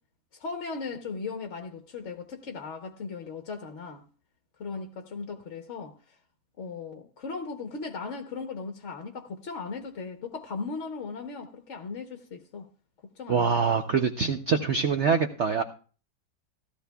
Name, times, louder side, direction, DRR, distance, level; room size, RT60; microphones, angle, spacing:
voice 1, 0.3-4.0 4.6-6.0 6.6-12.7 13.2-13.8, left 4 dB, 50° left, 1.0 m, -37 dB
voice 2, 13.3-15.6, right 6 dB, 70° right, 0.6 m, -24 dB
16.5 x 13.0 x 2.3 m
omnidirectional pair, 2.1 m